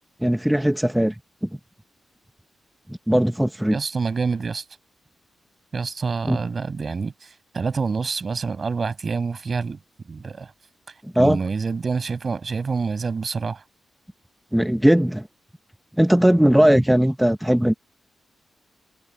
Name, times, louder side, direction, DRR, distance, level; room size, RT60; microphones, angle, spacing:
voice 1, 0.2-1.1 1.4-1.5 2.9-3.8 6.3-6.4 11.2-11.4 14.5-15.3 16.0-17.7, equal, 5° right, 0.8 m, -18 dB
voice 2, 3.7-4.6 5.7-9.8 10.1-10.5 11.2-13.6, right 4 dB, 40° right, 6.5 m, -27 dB
cardioid pair, 100°, 0 cm